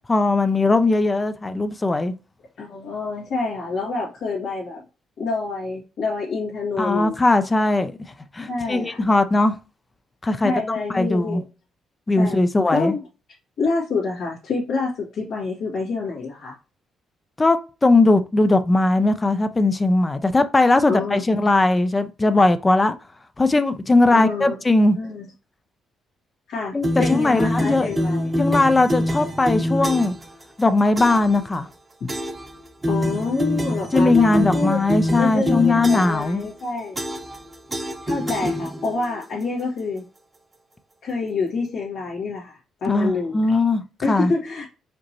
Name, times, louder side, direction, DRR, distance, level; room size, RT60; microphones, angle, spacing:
voice 1, 0.1-2.1 6.8-7.9 8.3-9.5 10.2-11.4 12.1-12.9 17.4-23.0 23.4-25.0 26.7-27.9 28.4-30.1 30.6-31.7 33.9-36.4 42.9-44.3, left 2 dB, 20° left, 0.5 m, -19 dB
voice 2, 2.6-4.8 5.2-7.1 8.5-9.0 10.4-11.4 12.2-12.4 12.7-13.0 13.6-16.5 20.8-21.2 24.1-24.6 24.9-25.3 26.5-28.3 32.9-34.8 35.2-37.0 38.0-40.0 41.0-43.6 44.0-44.7, left 3 dB, 75° left, 1.8 m, -27 dB
sound 1, 26.8-30.3 31.0-31.4 32.1-32.5 32.8-36.3 37.0-37.4 37.7-39.0, equal, 25° right, 0.8 m, -25 dB
5.1 x 2.9 x 3.0 m
cardioid pair, 90°, 0 cm